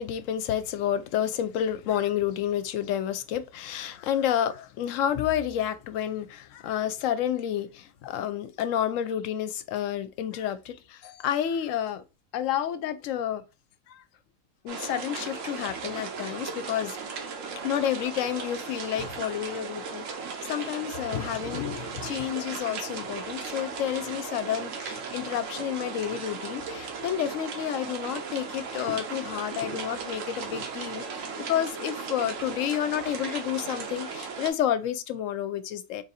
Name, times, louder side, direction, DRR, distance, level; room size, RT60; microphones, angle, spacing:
voice 1, 0.0-12.0 12.3-13.4 13.9-14.0 14.6-17.2 17.6-20.1 20.4-36.0, left 10 dB, 70° left, 0.9 m, -30 dB
sound 1, 14.7-34.5, right 5 dB, 70° right, 1.1 m, -37 dB
3.7 x 2.6 x 4.0 m
omnidirectional pair, 1.4 m